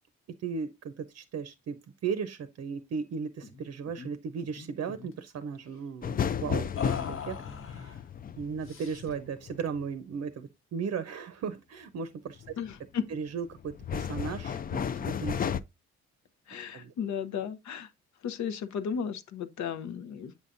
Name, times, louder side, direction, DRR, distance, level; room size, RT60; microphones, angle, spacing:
voice 1, 0.4-7.4 7.7-7.9 8.4-12.4 13.1-15.5 16.7-16.9, right 6 dB, 55° right, 0.6 m, -36 dB
sound 1, 3.4-3.6 3.9-4.1 4.4-5.2 6.8-8.0 8.6-9.3, left 6 dB, 45° left, 1.1 m, -40 dB
sound 2, 6.0-9.9 12.4-12.8 13.3-15.6, left 8 dB, 30° left, 0.4 m, -33 dB
voice 2, 12.6-13.1 16.5-17.9 18.2-20.4, left 7 dB, 65° left, 0.8 m, -34 dB
8.0 x 5.6 x 2.5 m
cardioid pair, 90°, 30 cm